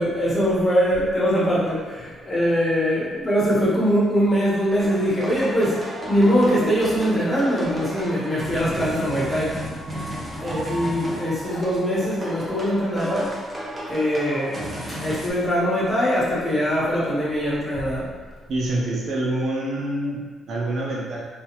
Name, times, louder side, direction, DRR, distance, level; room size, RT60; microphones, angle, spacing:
voice 1, 0.0-9.6 10.4-13.3 13.9-14.6 14.9-18.1, equal, 25° left, -8 dB, 1.4 m, -22 dB
sound 1, 4.8-15.3, right 1 dB, 30° right, 0.8 m, -33 dB
voice 2, 18.5-21.2, right 1 dB, 65° right, -3 dB, 0.7 m, -26 dB
3.5 x 2.7 x 3.0 m, 1.4 s
cardioid pair, 90°, 0 cm